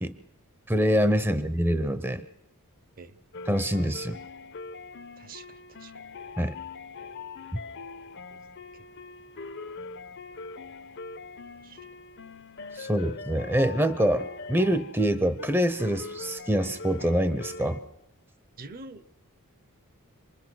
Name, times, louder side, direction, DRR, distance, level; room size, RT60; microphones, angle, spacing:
voice 1, 0.7-2.3 3.5-4.2 6.4-6.5 12.7-17.8, equal, 10° right, 12 dB, 0.7 m, -25 dB
sound 1, 3.3-17.8, left 4 dB, 55° left, 0.9 m, -42 dB
voice 2, 5.2-5.9 8.7-8.8 11.6-11.8 12.8-12.9 18.6-19.0, right 3 dB, 40° right, 14 dB, 0.9 m, -46 dB
26.5 x 20.5 x 6.2 m, 0.86 s
head